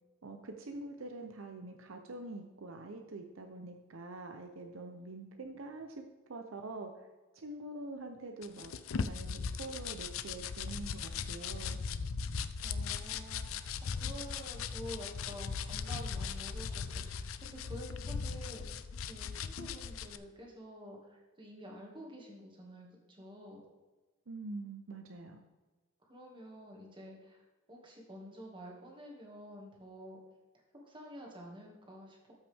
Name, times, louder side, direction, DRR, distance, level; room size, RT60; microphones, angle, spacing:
voice 1, 0.2-6.0 6.3-7.1 7.3-8.7 9.0-11.8 24.3-25.4, right 2 dB, 65° right, 4 dB, 0.7 m, -45 dB
sound 1, 8.4-20.2, left 5 dB, 70° left, 0.5 m, -38 dB
voice 2, 12.6-18.6 19.1-23.6 26.1-27.4 27.7-30.2 30.8-32.3, equal, 25° right, -1 dB, 2.0 m, -49 dB
13.0 x 5.8 x 3.5 m, 1.3 s
head